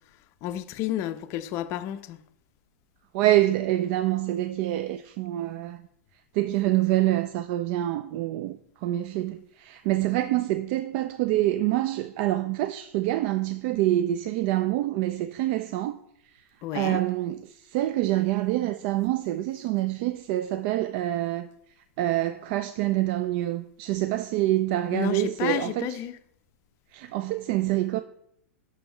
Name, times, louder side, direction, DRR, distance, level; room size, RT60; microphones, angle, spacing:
voice 1, 0.4-2.2 16.6-17.0 24.9-26.2, left 12 dB, 40° left, 0.5 m, -31 dB
voice 2, 3.1-5.8 6.3-16.0 16.7-21.5 22.0-26.0 26.9-28.0, right 15 dB, 50° right, 0.3 m, -26 dB
6.2 x 5.2 x 4.5 m
hypercardioid pair, 115°, 7 cm